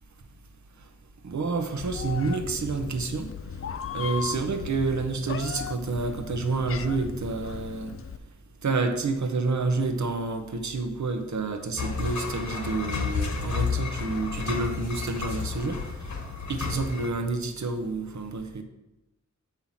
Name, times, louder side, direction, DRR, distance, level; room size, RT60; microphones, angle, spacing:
voice 1, 1.2-3.3 3.9-7.9 8.6-15.8 16.5-18.6, right 3 dB, 75° right, 7 dB, 0.9 m, -29 dB
Meow, 1.8-8.2, left 7 dB, 50° left, 0.4 m, -37 dB
sound 1, 11.8-17.1, left 5 dB, 75° left, 1.3 m, -31 dB
7.4 x 5.5 x 5.8 m, 0.96 s
wide cardioid pair, 100°, 29 cm